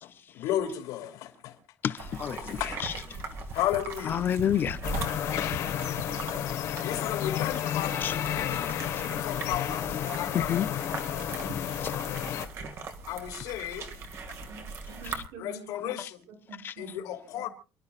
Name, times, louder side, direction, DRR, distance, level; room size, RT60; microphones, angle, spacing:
voice 1, 0.0-1.6 2.4-3.0 3.5-4.2 6.8-10.5 13.1-13.9 15.4-16.2 16.8-17.5, left 12 dB, 75° left, 3.2 m, -34 dB
voice 2, 1.8-2.9 4.1-4.8 8.0-8.1 10.3-10.7 11.8-11.9 16.6-16.7, left 9 dB, 35° left, 0.6 m, -29 dB
sound 1, 2.0-15.3, right 3 dB, 45° right, 2.0 m, -40 dB
sound 2, 4.8-12.5, left 10 dB, 55° left, 1.3 m, -31 dB
voice 3, 14.5-15.9 16.3-17.1 17.3-17.5, right 4 dB, 90° right, 6.4 m, -47 dB
29.0 x 12.0 x 2.4 m
cardioid pair, 165°, 6 cm